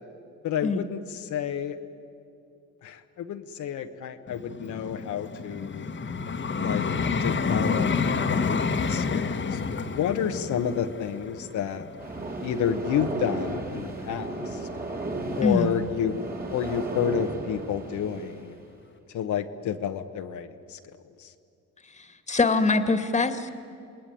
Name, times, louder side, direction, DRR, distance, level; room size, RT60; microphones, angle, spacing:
voice 1, 0.4-1.0 1.2-1.8 2.8-5.9 6.6-6.8 7.2-11.9 12.4-14.7 15.4-16.2 16.5-18.5 19.1-20.8 21.2-21.3, left 8 dB, 75° left, 5 dB, 1.2 m, -30 dB
Vehicle, 4.3-13.4 14.0-14.2, left 5 dB, 40° left, 1.4 m, -29 dB
sound 1, 12.0-18.4, right 2 dB, 30° right, 3.3 m, -34 dB
voice 2, 15.4-15.7 21.8-23.5, left 3 dB, 25° left, 9 dB, 1.9 m, -24 dB
27.5 x 20.0 x 9.2 m, 2.5 s
cardioid pair, 90°, 30 cm